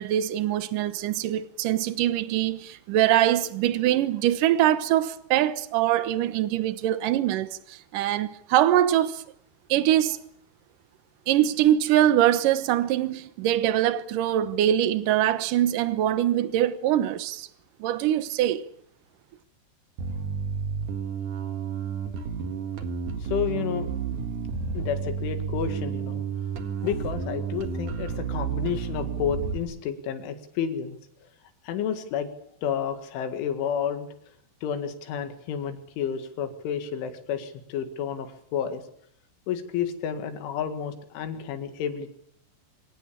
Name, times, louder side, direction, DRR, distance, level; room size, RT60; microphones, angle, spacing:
voice 1, 0.0-9.2 9.7-10.2 11.3-17.5 17.8-18.7, right 12 dB, 75° right, 2.0 m, -23 dB
Bass guitar, 20.0-29.6, right 6 dB, 55° right, 2.6 m, -31 dB
voice 2, 23.2-23.9 24.7-26.2 26.8-31.0 31.6-32.3 32.6-34.1 34.6-38.8 39.5-42.1, left 8 dB, 90° left, 4.5 m, -30 dB
25.5 x 17.0 x 8.6 m
omnidirectional pair, 5.4 m